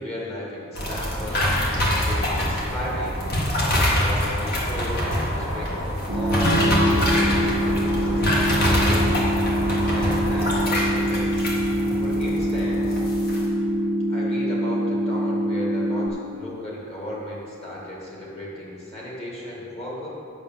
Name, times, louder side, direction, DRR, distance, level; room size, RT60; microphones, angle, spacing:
voice 1, 0.0-3.3 3.9-9.1 9.8-11.5 12.0-13.0 14.1-20.1, left 1 dB, 30° left, -5 dB, 2.2 m, -35 dB
sound 1, 0.7-13.4, equal, 45° left, 2.0 m, -25 dB
sound 2, 6.1-16.1, equal, 55° right, 1.0 m, -24 dB
Strum, 6.4-10.6, left 1 dB, 80° left, 1.2 m, -29 dB
8.7 x 5.8 x 7.4 m, 2.6 s
head